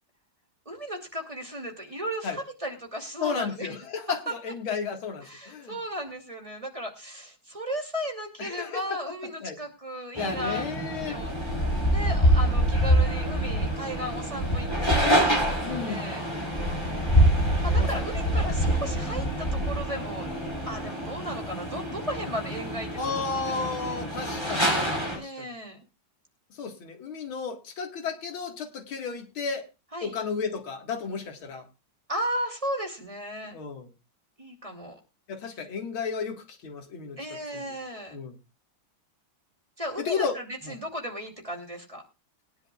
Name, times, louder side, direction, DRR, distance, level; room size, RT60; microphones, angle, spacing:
voice 1, 0.7-3.7 5.2-10.7 11.1-11.3 11.9-16.3 17.6-20.3 20.6-24.0 25.1-25.8 29.9-30.2 32.1-33.6 34.4-35.0 37.2-38.2 39.8-42.0, equal, 15° right, 2 dB, 2.6 m, -35 dB
voice 2, 3.2-5.8 8.4-9.0 9.4-9.6 10.2-11.2 15.6-16.1 17.7-18.0 23.0-24.8 25.1-25.5 26.6-29.7 30.0-31.7 33.5-33.9 35.3-37.2 37.5-37.7 38.1-38.4 40.0-40.4 40.6-40.8, left 5 dB, 85° left, 5 dB, 2.5 m, -33 dB
sound 1, 10.2-25.2, equal, 10° left, 3.8 m, -26 dB
21.5 x 10.5 x 2.3 m, 0.29 s
omnidirectional pair, 2.2 m